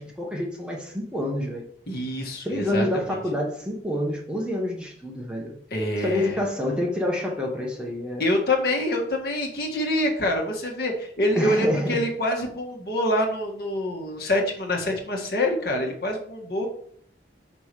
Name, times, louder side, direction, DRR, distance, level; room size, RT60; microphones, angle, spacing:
voice 1, 0.0-1.6 2.4-5.6 6.0-8.2 11.4-12.0, left 1 dB, 5° right, -1 dB, 1.2 m, -28 dB
voice 2, 1.9-2.9 5.7-6.3 8.2-16.7, left 1 dB, 55° left, 0 dB, 1.6 m, -26 dB
6.0 x 5.6 x 4.8 m, 0.62 s
head